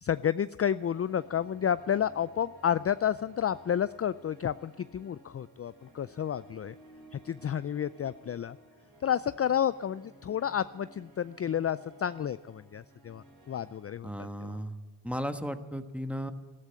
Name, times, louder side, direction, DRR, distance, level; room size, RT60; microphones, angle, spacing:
voice 1, 0.0-6.7 7.1-8.6 9.0-14.1 14.4-14.6, left 9 dB, 35° left, 15 dB, 0.4 m, -31 dB
sound 1, 0.6-13.8, right 2 dB, 55° right, 6.9 m, -56 dB
voice 2, 14.0-14.7 15.0-16.3, equal, 5° right, 8 dB, 1.3 m, -35 dB
13.5 x 13.0 x 8.1 m, 1.3 s
cardioid pair, 45°, 41 cm